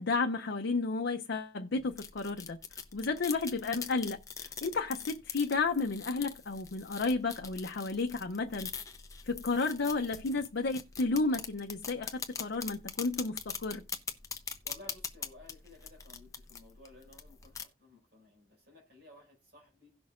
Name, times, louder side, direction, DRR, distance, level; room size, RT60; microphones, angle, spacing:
voice 1, 0.0-2.6 2.9-8.7 9.3-13.8, left 3 dB, 90° left, 0.6 m, -32 dB
sound 1, 1.7-17.6, left 6 dB, 20° left, 0.7 m, -43 dB
voice 2, 14.6-19.9, left 2 dB, 65° right, 5.5 m, -56 dB
17.0 x 6.1 x 2.5 m
head